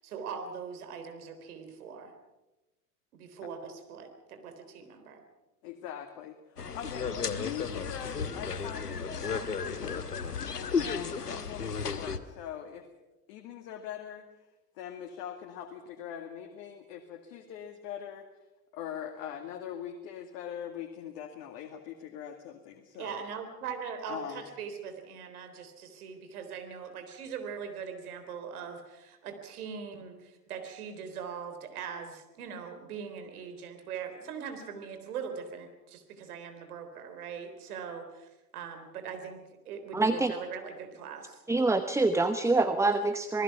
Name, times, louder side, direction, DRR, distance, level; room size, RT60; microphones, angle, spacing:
voice 1, 0.0-2.1 3.1-5.2 22.9-39.4 39.7-41.4, right 6 dB, 70° right, 7 dB, 3.8 m, -41 dB
voice 2, 5.6-10.1 10.5-12.9 13.3-14.3 14.7-18.3 18.7-23.2 24.1-24.5, left 9 dB, 55° left, 4 dB, 2.3 m, -42 dB
sound 1, 6.6-12.2, left 5 dB, 90° left, 1.3 m, -34 dB
voice 3, 39.9-40.3 41.5-43.4, right 3 dB, 5° right, 11 dB, 0.9 m, -25 dB
27.0 x 19.5 x 5.9 m, 1.0 s
figure-of-eight pair, 80°, 46 cm